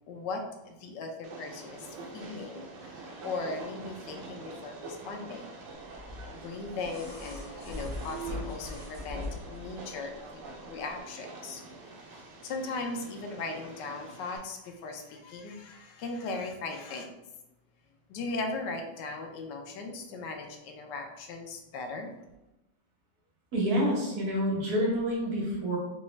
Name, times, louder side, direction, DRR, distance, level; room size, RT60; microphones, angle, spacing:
voice 1, 0.1-1.9 2.1-5.5 6.3-10.4 10.7-11.6 12.1-17.1 18.1-22.1, left 3 dB, 80° left, 4 dB, 1.2 m, -38 dB
Train, 1.2-14.4, right 2 dB, 80° right, 1.3 m, -46 dB
sound 1, 5.9-9.7 10.9-11.0, left 1 dB, 15° right, 1.3 m, -40 dB
voice 2, 23.5-25.8, equal, 65° right, -3 dB, 1.5 m, -28 dB
4.0 x 2.3 x 3.1 m, 0.96 s
omnidirectional pair, 1.9 m